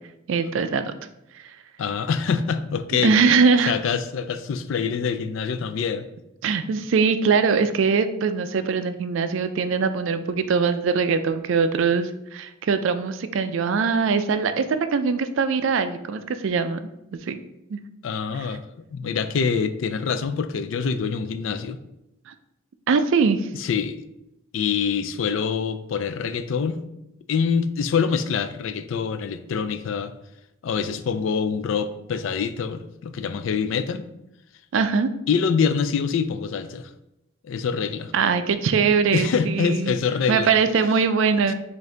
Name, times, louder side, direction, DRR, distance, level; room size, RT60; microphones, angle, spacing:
voice 1, 0.3-0.9 1.3-1.4 3.0-3.7 6.4-16.9 17.3-17.4 17.7-17.8 18.4-18.5 22.3-22.4 22.9-23.5 34.7-35.1 38.1-39.9 40.3-41.5, right 5 dB, 60° right, 10 dB, 0.3 m, -22 dB
voice 2, 1.8-3.2 3.7-6.1 18.0-18.6 18.9-21.8 23.5-24.0 24.5-26.8 27.3-30.1 30.6-34.1 35.3-36.9 37.4-38.1 39.1-40.5 41.5-41.6, left 6 dB, 60° left, 11 dB, 0.3 m, -25 dB
6.3 x 2.6 x 3.3 m, 0.87 s
head